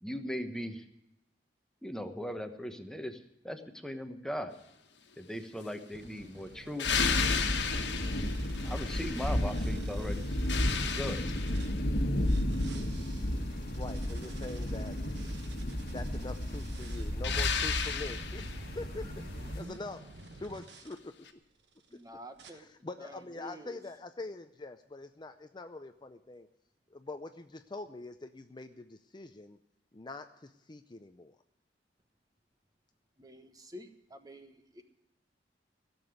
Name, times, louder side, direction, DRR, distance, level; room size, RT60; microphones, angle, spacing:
voice 1, 0.0-0.8 1.8-4.5 5.2-7.0 8.6-10.3 10.8-11.2, equal, 5° left, 7 dB, 1.1 m, -39 dB
sound 1, 5.9-11.8 12.2-21.0 21.6-22.0 22.4-22.5, right 2 dB, 70° right, 1.3 m, -51 dB
sound 2, 6.8-9.7 10.1-11.9 17.2-18.7 21.3-21.4, left 7 dB, 75° left, 1.4 m, -34 dB
sound 3, 6.8-19.6, left 1 dB, 55° left, 1.5 m, -33 dB
voice 2, 13.8-15.0 15.9-19.3 19.5-20.1 20.3-21.1 21.9-22.0 22.5-26.5 26.9-29.6 29.9-31.4, left 2 dB, 25° left, 9 dB, 0.5 m, -44 dB
voice 3, 21.9-22.7 23.0-23.8 33.2-34.8, equal, 20° right, 7 dB, 1.2 m, -49 dB
16.5 x 7.0 x 9.3 m, 0.85 s
head